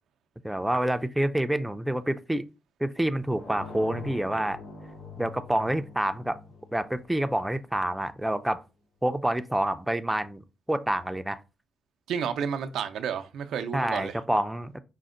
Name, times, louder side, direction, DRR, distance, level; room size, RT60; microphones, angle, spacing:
voice 1, 0.4-2.5 2.8-4.6 5.2-6.4 6.7-8.6 9.0-10.4 10.7-11.4 13.7-14.7, right 1 dB, 5° right, 0.4 m, -27 dB
sound 1, 3.3-8.0, left 4 dB, 75° left, 2.3 m, -44 dB
voice 2, 12.1-14.2, right 7 dB, 85° right, 0.4 m, -31 dB
5.1 x 2.1 x 3.7 m
cardioid pair, 85°, 0 cm